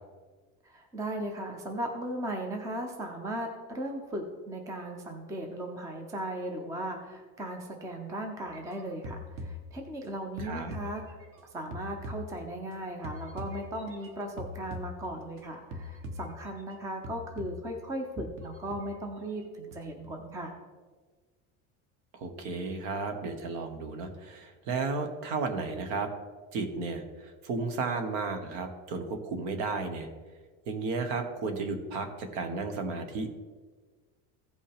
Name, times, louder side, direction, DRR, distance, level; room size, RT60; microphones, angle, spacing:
voice 1, 0.6-11.2 11.5-20.5, right 1 dB, 10° right, 4 dB, 0.5 m, -37 dB
sound 1, 8.5-10.1 10.4-12.7 13.0-15.4 15.7-16.8 17.0-17.8 18.4-19.4 19.7-20.2, left 2 dB, 35° right, 1.0 m, -43 dB
voice 2, 10.4-10.7 22.1-26.1 26.5-30.1 30.7-33.3, right 4 dB, 65° right, 6 dB, 1.4 m, -33 dB
16.0 x 5.4 x 3.4 m, 1.4 s
cardioid pair, 180°, 37 cm